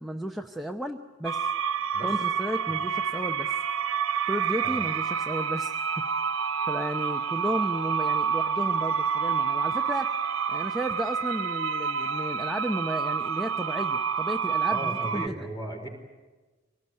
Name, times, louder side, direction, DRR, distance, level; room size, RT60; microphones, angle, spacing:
voice 1, 0.0-1.5 2.0-3.6 4.3-5.7 6.7-10.1 10.5-15.4, equal, ahead, 2 dB, 0.8 m, -33 dB
sound 1, 1.2-15.3, right 6 dB, 85° right, 0.8 m, -28 dB
voice 2, 14.7-15.9, right 1 dB, 20° left, 2 dB, 4.5 m, -36 dB
25.5 x 19.0 x 9.5 m, 1.3 s
head